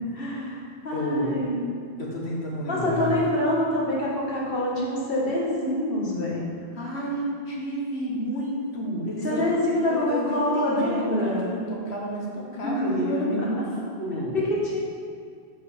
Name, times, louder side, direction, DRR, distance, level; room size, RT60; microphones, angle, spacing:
voice 1, 0.1-1.6 2.7-6.5 9.2-11.5 12.6-13.3 14.3-14.8, left 1 dB, 60° left, -5 dB, 1.8 m, -26 dB
voice 2, 0.9-1.4 2.0-3.2 6.7-9.6 9.9-13.7 14.0-14.4, equal, 85° left, -3 dB, 1.8 m, -30 dB
7.7 x 5.4 x 5.2 m, 2.3 s
omnidirectional pair, 1.1 m